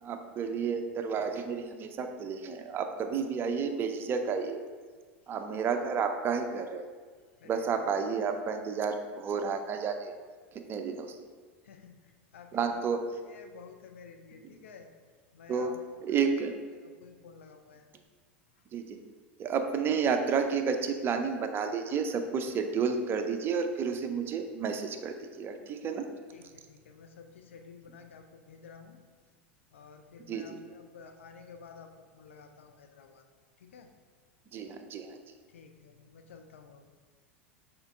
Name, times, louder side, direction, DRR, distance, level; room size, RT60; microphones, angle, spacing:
voice 1, 0.0-4.6 5.3-6.9 7.4-10.1 10.5-11.3 12.5-13.0 15.5-15.7 16.0-16.6 18.7-19.0 19.4-26.1 30.3-30.6 34.5-35.2, right 6 dB, 35° right, 6 dB, 0.6 m, -31 dB
voice 2, 7.4-7.8 11.6-12.8 13.3-14.9 15.3-15.8 16.8-17.9 26.3-29.0 29.7-33.2 33.6-33.9 35.5-36.8, left 6 dB, 75° left, 6 dB, 0.6 m, -52 dB
6.2 x 4.4 x 3.7 m, 1.5 s
hypercardioid pair, 90°, 7 cm